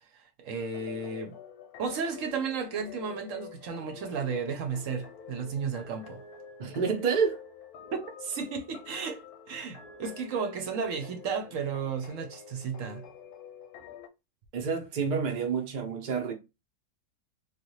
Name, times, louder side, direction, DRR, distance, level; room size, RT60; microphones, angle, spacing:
voice 1, 0.1-1.3 1.8-6.2 8.2-9.2 9.5-13.0, right 5 dB, 65° right, 0.9 m, -33 dB
sound 1, 0.5-14.1, left 7 dB, 70° left, 1.0 m, -48 dB
voice 2, 6.6-7.4 14.5-16.3, right 5 dB, 80° right, 0.4 m, -28 dB
3.2 x 2.3 x 3.0 m
omnidirectional pair, 1.8 m